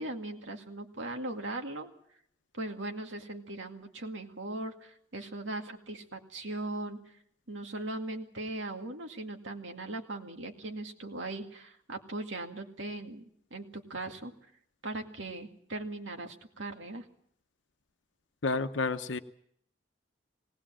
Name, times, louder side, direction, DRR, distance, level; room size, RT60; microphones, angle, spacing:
voice 1, 0.0-1.9 2.5-7.0 7.5-13.2 13.5-14.3 14.8-17.0, right 2 dB, 90° right, 4 dB, 2.2 m, -39 dB
voice 2, 18.4-19.2, left 3 dB, 80° left, 8 dB, 0.9 m, -30 dB
19.0 x 18.5 x 7.6 m, 0.68 s
head